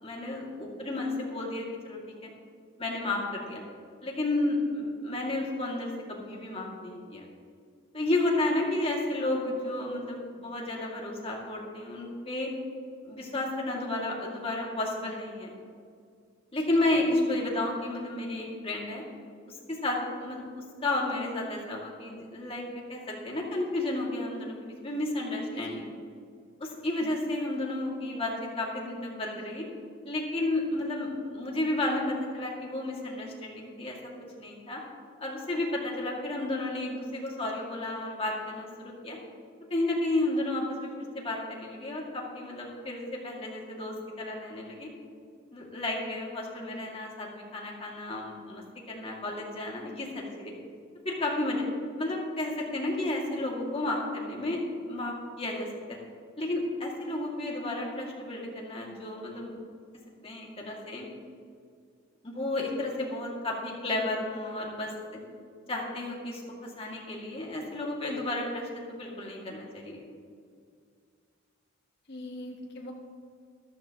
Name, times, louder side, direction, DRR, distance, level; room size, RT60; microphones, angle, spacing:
voice 1, 0.0-2.3 2.8-3.6 4.0-7.2 7.9-12.5 13.0-15.5 16.5-19.0 19.7-20.4 20.8-22.6 22.9-25.9 26.6-29.6 30.1-34.0 34.4-34.8 35.2-39.2 39.7-40.9 41.2-44.9 45.5-50.5 51.0-51.6 52.0-54.6 54.9-56.0 56.4-59.5 60.2-61.1 62.2-64.9 65.7-66.4 66.8-70.0, left 2 dB, 30° left, -2 dB, 2.2 m, -32 dB
voice 2, 25.5-25.8 27.0-27.1 72.1-72.9, left 1 dB, 55° left, -1 dB, 1.3 m, -41 dB
13.5 x 13.0 x 3.0 m, 2.2 s
head